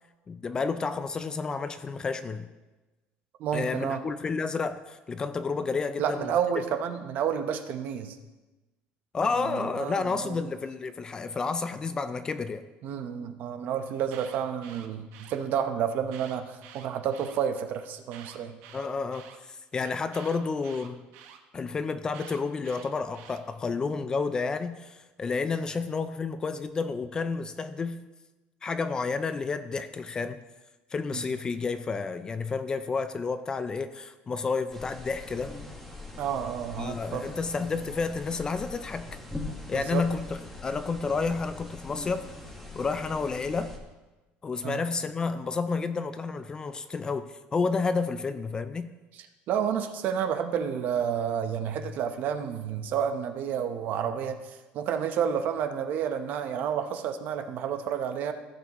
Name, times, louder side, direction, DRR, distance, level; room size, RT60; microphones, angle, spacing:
voice 1, 0.3-2.5 3.5-6.3 9.1-12.6 18.7-21.0 21.5-28.1 28.6-30.4 30.9-35.6 36.8-39.2 39.7-42.3 42.7-43.7 44.4-48.9, left 4 dB, 20° left, 11 dB, 0.4 m, -30 dB
voice 2, 3.4-4.0 6.0-8.2 9.5-10.4 12.8-18.6 31.1-31.3 36.2-37.3 39.7-40.1 44.6-44.8 49.5-58.3, right 8 dB, 50° right, 8 dB, 0.8 m, -30 dB
Alarm, 13.9-15.4 16.0-17.4 18.0-19.4 20.1-21.4 22.1-23.4, right 9 dB, 85° right, 1.0 m, -49 dB
sound 1, 34.7-43.8, left 2 dB, 5° left, 1.4 m, -42 dB
15.5 x 7.3 x 3.0 m, 1.1 s
cardioid pair, 160°, 4 cm